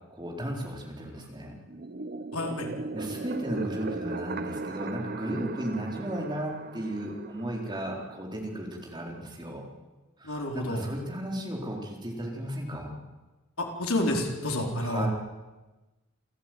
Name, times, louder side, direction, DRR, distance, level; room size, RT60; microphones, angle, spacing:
voice 1, 0.1-1.5 2.9-9.6 10.2-13.0 14.8-15.1, right 1 dB, 20° right, 0 dB, 4.3 m, -35 dB
sound 1, 1.7-8.2, right 3 dB, 45° right, 0.9 m, -38 dB
voice 2, 2.3-2.7 10.2-10.9 13.6-15.1, left 1 dB, 85° left, 2 dB, 4.2 m, -29 dB
29.0 x 14.0 x 9.4 m, 1.1 s
head